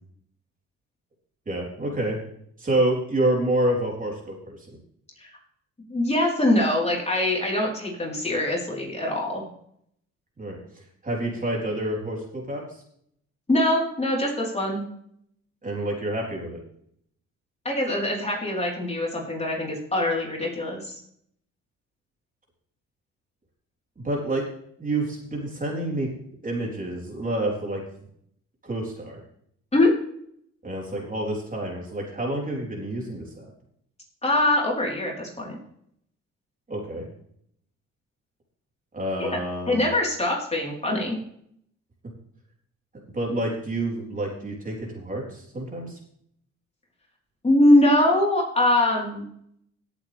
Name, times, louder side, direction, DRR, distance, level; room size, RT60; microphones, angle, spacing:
voice 1, 1.5-2.2 2.6-4.6 10.4-12.8 15.6-16.6 24.0-24.5 24.8-26.1 26.4-27.8 28.6-29.2 30.6-33.5 36.7-37.1 38.9-39.8 43.1-46.0, right 1 dB, 25° right, -2 dB, 4.0 m, -28 dB
voice 2, 5.9-9.4 13.5-14.8 17.6-21.0 29.7-29.9 34.2-35.5 39.2-39.3 39.7-41.2 47.4-49.2, left 1 dB, 20° left, -2 dB, 4.1 m, -23 dB
17.0 x 8.3 x 3.5 m, 0.69 s
cardioid pair, 90°, 30 cm